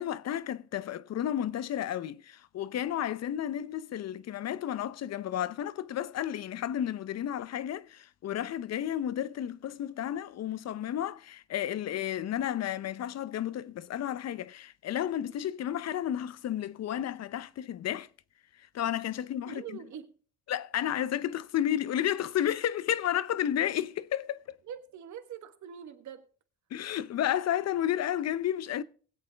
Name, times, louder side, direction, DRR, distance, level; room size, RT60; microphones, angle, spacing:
voice 1, 0.0-18.1 18.7-19.8 20.5-24.6 26.7-28.8, left 11 dB, 60° left, 0.7 m, -32 dB
voice 2, 19.5-20.1 24.7-26.3, right 8 dB, 70° right, 1.4 m, -43 dB
20.0 x 8.1 x 3.4 m
cardioid pair, 90°, 30 cm